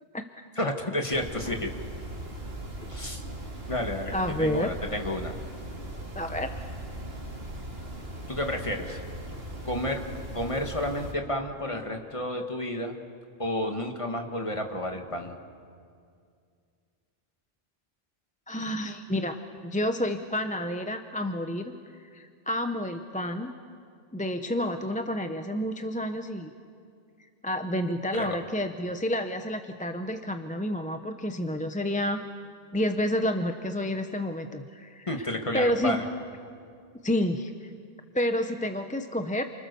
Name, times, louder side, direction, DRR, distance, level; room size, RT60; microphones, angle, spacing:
voice 1, 0.6-1.7 2.9-3.2 3.7-5.4 8.3-9.0 9.6-10.0 10.3-13.0 13.4-15.4 28.1-28.4 35.1-36.0, left 1 dB, 30° left, 3 dB, 2.1 m, -31 dB
sound 1, 1.1-11.1, right 1 dB, 70° right, 2.8 m, -39 dB
voice 2, 4.1-4.7 6.1-6.5 18.5-21.7 22.1-23.5 24.1-26.5 27.4-32.2 32.7-35.3 35.5-36.0 37.0-37.7 38.1-39.4, left 1 dB, 10° left, 6 dB, 0.8 m, -29 dB
29.0 x 26.0 x 7.0 m, 2.3 s
omnidirectional pair, 1.0 m